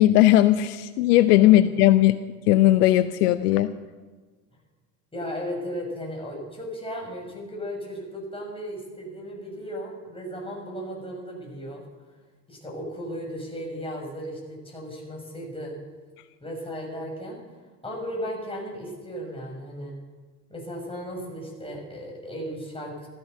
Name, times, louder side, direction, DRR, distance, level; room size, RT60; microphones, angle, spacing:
voice 1, 0.0-2.2 2.5-3.7, left 14 dB, 70° left, 13 dB, 0.8 m, -18 dB
voice 2, 5.1-11.8 12.5-15.7 16.4-17.4 17.8-19.9 20.5-23.1, equal, 10° left, -1 dB, 6.5 m, -35 dB
15.0 x 14.0 x 6.5 m, 1.4 s
hypercardioid pair, 70°, 48 cm